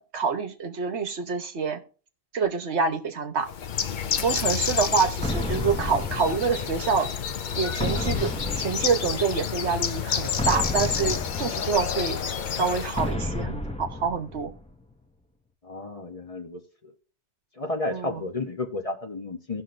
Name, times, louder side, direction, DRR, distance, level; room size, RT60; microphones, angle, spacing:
voice 1, 0.0-1.8 2.3-3.5 4.2-7.1 7.5-12.2 12.5-14.5 17.9-18.2, right 5 dB, 75° right, 7 dB, 1.3 m, -27 dB
Bird, 3.5-13.1, left 7 dB, 55° left, 0.6 m, -29 dB
sound 1, 5.2-7.0 7.8-9.5 10.4-12.2 13.0-14.7, left 1 dB, 10° left, 0.5 m, -32 dB
voice 2, 15.6-16.9 17.6-19.6, left 2 dB, 35° left, 4 dB, 0.9 m, -32 dB
17.5 x 6.0 x 2.6 m, 0.39 s
omnidirectional pair, 1.2 m